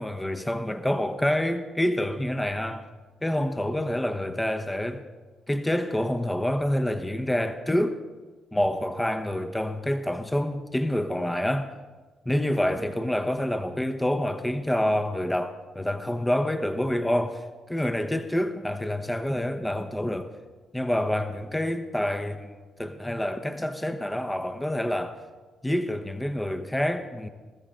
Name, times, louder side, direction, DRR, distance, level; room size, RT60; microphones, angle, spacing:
voice 1, 0.0-2.9 3.2-5.0 5.5-8.0 8.5-11.7 12.3-20.3 20.7-22.5 22.8-25.2 25.6-27.3, left 1 dB, 10° left, 1.0 m, -27 dB
21.5 x 14.0 x 3.8 m
hypercardioid pair, 45°, 0 cm